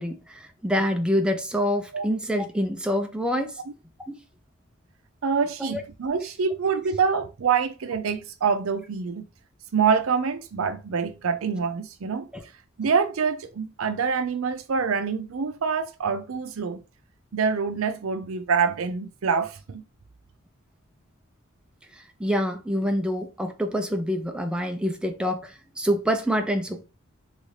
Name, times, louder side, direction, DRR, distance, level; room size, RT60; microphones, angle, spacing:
voice 1, 0.0-3.6 4.0-4.1 5.6-5.8 12.3-12.4 21.9-26.8, equal, 5° right, 0.4 m, -26 dB
voice 2, 5.2-9.3 9.7-12.3 12.8-16.8 17.3-19.8, right 5 dB, 75° right, 0.5 m, -26 dB
3.1 x 2.6 x 3.2 m
head